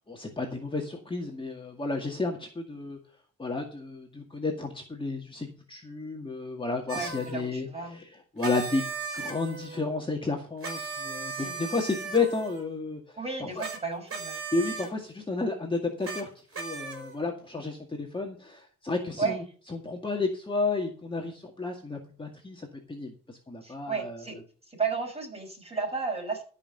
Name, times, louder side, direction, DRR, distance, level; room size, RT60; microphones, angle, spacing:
voice 1, 0.1-3.0 3.4-8.1 8.3-8.9 9.1-13.6 14.5-16.3 16.6-19.4 19.7-24.2, left 3 dB, 15° left, 1 dB, 2.0 m, -32 dB
voice 2, 6.9-8.0 11.4-11.6 13.2-14.4 19.2-19.4 23.6-24.4 24.6-26.4, right 4 dB, 20° right, 2 dB, 6.2 m, -33 dB
sound 1, 6.9-7.3 8.4-9.8 10.6-12.6 13.6-13.8 14.1-14.9 16.0-16.2 16.5-17.2, right 5 dB, 45° right, 4.3 m, -37 dB
13.5 x 5.7 x 6.7 m, 0.43 s
cardioid pair, 90°, 30 cm